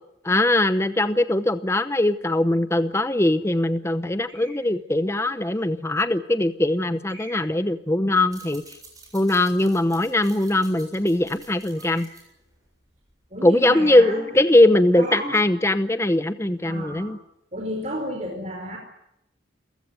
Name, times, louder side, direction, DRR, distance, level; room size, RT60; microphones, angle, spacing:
voice 1, 0.2-8.6 9.1-12.1 13.4-17.2, left 1 dB, 15° left, 12 dB, 0.8 m, -21 dB
sound 1, 4.3-4.7 5.5-5.6 7.1-7.6 11.7-12.3 13.6-14.2 14.5-14.7 14.9-15.4, right 1 dB, 85° right, 7.9 m, -46 dB
sound 2, 8.2-13.3, right 4 dB, 20° right, 7.4 m, -49 dB
voice 2, 13.3-14.3 14.9-15.4 16.6-17.1 17.5-18.8, equal, 35° right, 1 dB, 4.4 m, -32 dB
28.0 x 15.5 x 9.5 m, 0.80 s
head